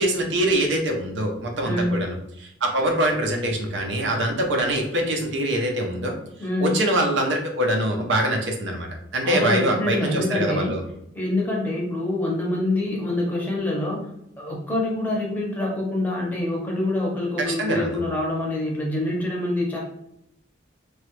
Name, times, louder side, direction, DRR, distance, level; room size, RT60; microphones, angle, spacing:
voice 1, 0.0-2.2 2.4-6.2 6.6-8.9 9.1-10.8 17.6-18.0, right 1 dB, 75° right, 2 dB, 0.6 m, -23 dB
voice 2, 1.6-2.0 6.4-6.8 9.2-10.7 11.1-14.1 14.4-19.8, left 1 dB, 10° left, -3 dB, 0.7 m, -25 dB
3.0 x 2.3 x 3.0 m, 0.77 s
head